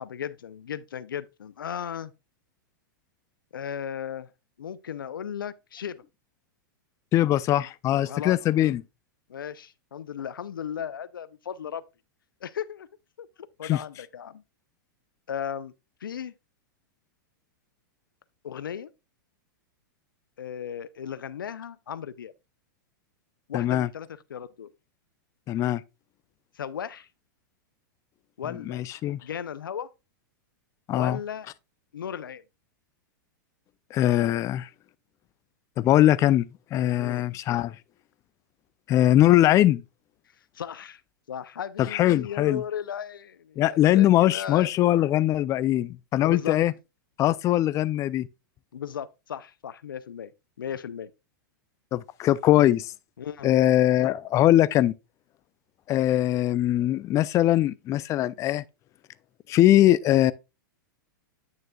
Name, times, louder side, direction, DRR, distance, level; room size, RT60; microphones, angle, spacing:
voice 1, 0.0-2.1 3.5-4.3 4.6-6.0 8.0-8.4 9.3-11.8 12.4-12.9 13.2-13.3 13.6-14.4 15.3-15.7 16.0-16.3 18.4-18.9 20.4-22.3 23.5-24.7 26.6-27.1 28.4-28.8 29.2-29.9 30.9-31.5 31.9-32.4 37.0-37.3 40.5-41.0 41.3-44.7 46.2-46.6 48.7-50.3 50.6-51.1 53.2-53.6, left 8 dB, 90° left, 0.6 m, -36 dB
voice 2, 7.1-8.8 13.6-13.8 23.5-23.9 25.5-25.8 28.7-29.2 30.9-31.2 33.9-34.7 35.8-37.8 38.9-39.8 41.8-42.6 43.6-46.7 47.2-48.3 51.9-52.9 53.4-54.9 55.9-58.6 59.5-60.3, left 13 dB, 30° left, 0.4 m, -21 dB
8.9 x 6.4 x 2.3 m
hypercardioid pair, 120°, 11 cm